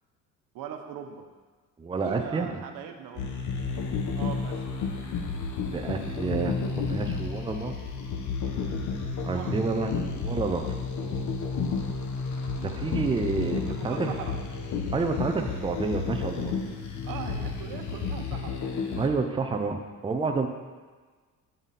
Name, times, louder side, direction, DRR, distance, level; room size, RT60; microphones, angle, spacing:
voice 1, 0.5-1.3 2.0-3.3 4.2-4.6 9.2-9.6 12.6-12.8 13.7-14.4 17.0-18.6, right 8 dB, 90° right, 5 dB, 1.0 m, -40 dB
voice 2, 1.8-2.5 5.7-7.8 9.2-11.3 12.6-14.1 14.9-16.6 19.0-20.5, right 4 dB, 15° right, 4 dB, 0.6 m, -29 dB
sound 1, 3.2-19.1, left 4 dB, 60° left, 1.1 m, -31 dB
8.2 x 7.5 x 4.2 m, 1.4 s
cardioid pair, 135°, 33 cm